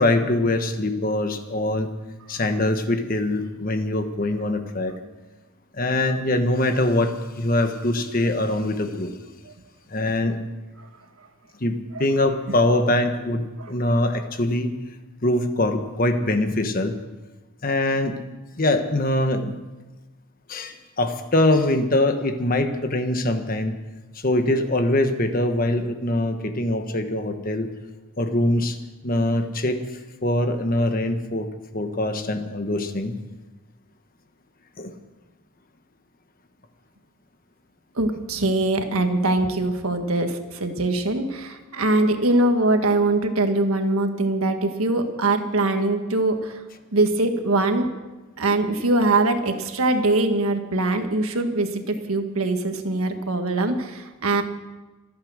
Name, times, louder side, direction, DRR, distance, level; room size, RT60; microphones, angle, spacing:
voice 1, 0.0-1.9 2.3-5.0 5.8-9.1 9.9-10.4 11.6-14.7 15.2-17.0 17.6-18.2 18.6-19.6 20.5-23.8 24.2-27.7 28.2-28.8 29.0-29.8 30.2-31.5 31.7-33.1 34.8-34.9, left 1 dB, 40° left, 7 dB, 1.3 m, -23 dB
voice 2, 37.9-46.6 46.9-47.9 48.4-54.4, right 2 dB, 85° right, 6 dB, 1.6 m, -22 dB
25.5 x 8.7 x 6.4 m, 1.2 s
head